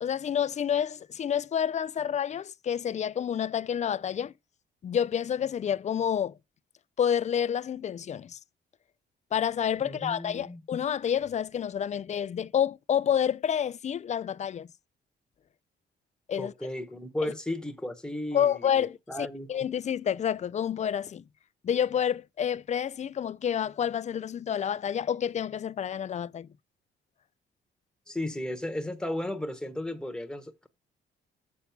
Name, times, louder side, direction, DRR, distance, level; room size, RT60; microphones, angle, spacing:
voice 1, 0.0-4.3 4.8-6.3 7.0-8.4 9.3-14.7 16.3-16.5 18.3-21.2 21.6-26.5, left 9 dB, 35° left, 0.4 m, -29 dB
voice 2, 9.8-10.6 16.4-19.5 28.1-30.7, left 1 dB, 5° left, 1.1 m, -35 dB
7.2 x 4.1 x 5.9 m
cardioid pair, 90°, 20 cm